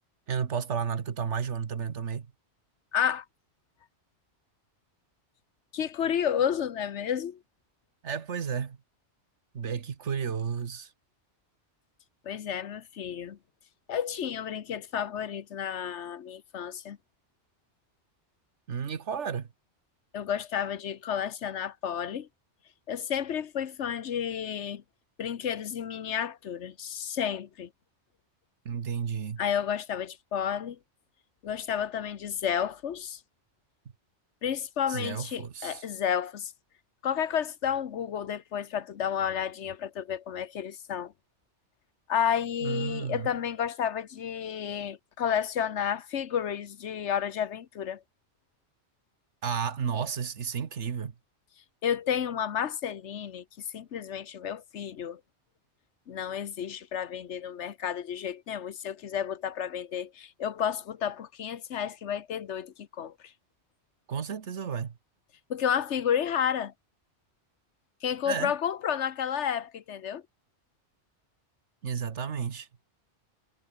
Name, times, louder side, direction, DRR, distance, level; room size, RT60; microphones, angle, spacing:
voice 1, 0.3-2.3 8.0-8.8 9.5-10.9 18.7-19.5 28.6-29.4 34.9-35.8 42.6-43.3 49.4-51.1 64.1-64.9 68.3-68.5 71.8-72.7, right 7 dB, 85° right, 1.6 m, -32 dB
voice 2, 2.9-3.2 5.7-7.4 12.2-13.4 13.9-17.0 20.1-22.3 22.9-24.8 25.2-27.7 29.4-30.8 31.4-33.2 34.4-36.5 37.0-41.1 42.1-48.0 51.8-53.4 53.7-55.2 56.1-63.3 65.5-66.7 68.0-70.2, left 8 dB, 80° left, 1.3 m, -31 dB
omnidirectional pair, 1.2 m